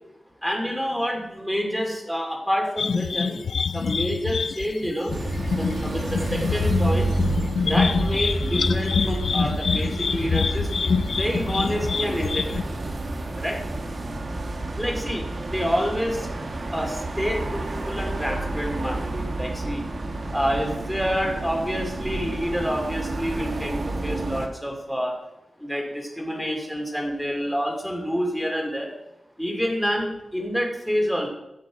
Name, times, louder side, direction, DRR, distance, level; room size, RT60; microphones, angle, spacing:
voice 1, 0.4-3.4 3.7-5.1 5.6-7.1 7.7-12.6 13.4-13.6 14.8-16.3 16.7-19.8 20.3-25.1 25.6-28.9 29.4-31.3, equal, ahead, 0 dB, 2.5 m, -28 dB
sound 1, 2.8-12.6, left 5 dB, 70° left, 0.4 m, -26 dB
sound 2, 5.1-24.5, right 2 dB, 45° right, 1.2 m, -30 dB
16.0 x 6.0 x 5.1 m, 0.90 s
wide cardioid pair, 135°, 0 cm